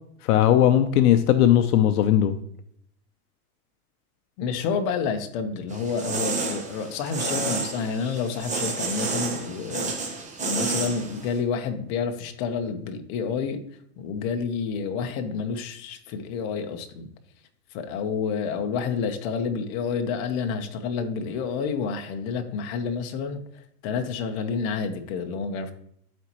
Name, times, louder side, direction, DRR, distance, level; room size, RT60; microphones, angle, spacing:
voice 1, 0.2-2.4, left 11 dB, 75° left, 9 dB, 0.8 m, -18 dB
voice 2, 4.4-13.6 14.0-17.1 17.7-25.7, left 5 dB, 45° left, 6 dB, 1.0 m, -29 dB
sound 1, 5.7-11.4, right 3 dB, 15° right, 1.1 m, -30 dB
12.5 x 4.3 x 3.0 m, 0.68 s
supercardioid pair, 150°, 46 cm